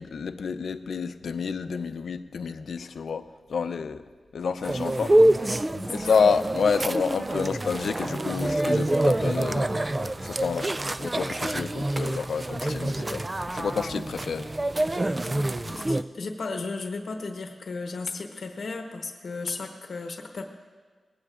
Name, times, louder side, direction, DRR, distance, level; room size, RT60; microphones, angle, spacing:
voice 1, 0.0-4.0 4.3-5.1 5.9-10.7 11.0-14.5, left 5 dB, 80° left, 10 dB, 0.5 m, -29 dB
sound 1, 4.6-16.0, right 1 dB, 25° right, 0.3 m, -26 dB
voice 2, 5.6-6.1 15.3-20.4, left 3 dB, 65° left, 3 dB, 1.1 m, -35 dB
20.5 x 16.5 x 2.5 m, 1.5 s
wide cardioid pair, 130°, 0 cm